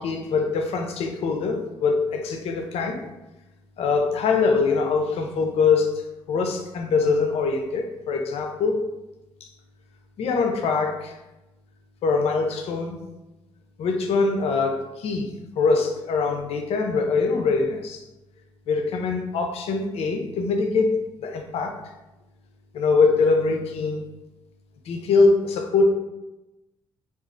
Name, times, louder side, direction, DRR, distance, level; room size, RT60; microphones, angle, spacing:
voice 1, 0.0-3.0 3.8-5.9 6.3-8.8 9.4-9.5 10.2-11.2 12.0-13.0 13.8-15.3 15.6-18.0 18.7-21.8 22.7-24.1 24.9-25.9, left 4 dB, 70° left, 4 dB, 0.5 m, -23 dB
4.5 x 2.4 x 2.5 m, 1.0 s
supercardioid pair, 65°, 11 cm